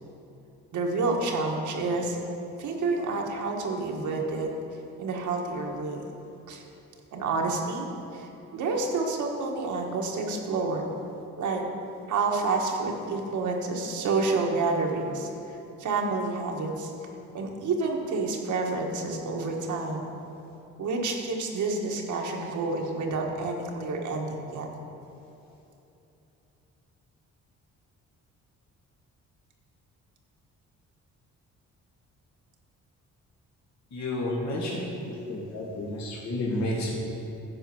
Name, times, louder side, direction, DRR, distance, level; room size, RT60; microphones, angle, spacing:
voice 1, 0.7-2.2 2.6-4.5 5.0-6.0 6.5-6.6 7.1-7.9 8.1-8.3 8.5-10.9 11.4-11.6 12.1-15.3 15.8-16.9 17.3-20.1 20.8-24.7, right 3 dB, 75° right, 1 dB, 1.6 m, -29 dB
voice 2, 33.9-37.0, left 1 dB, 65° left, -5 dB, 2.5 m, -31 dB
11.5 x 5.0 x 7.6 m, 2.9 s
cardioid pair, 90°, 30 cm